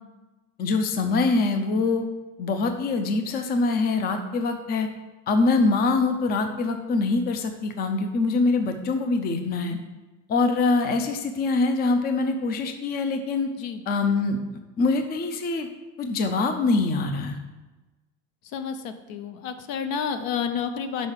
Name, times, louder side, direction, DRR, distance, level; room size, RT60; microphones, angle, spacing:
voice 1, 0.6-2.1 2.4-4.9 5.3-9.8 10.3-13.5 13.9-14.4 14.8-15.7 16.0-17.4, left 3 dB, 25° left, 6 dB, 0.5 m, -24 dB
voice 2, 18.5-21.1, left 7 dB, 65° left, 9 dB, 0.9 m, -30 dB
6.2 x 5.7 x 7.2 m, 1.1 s
cardioid pair, 170°, 37 cm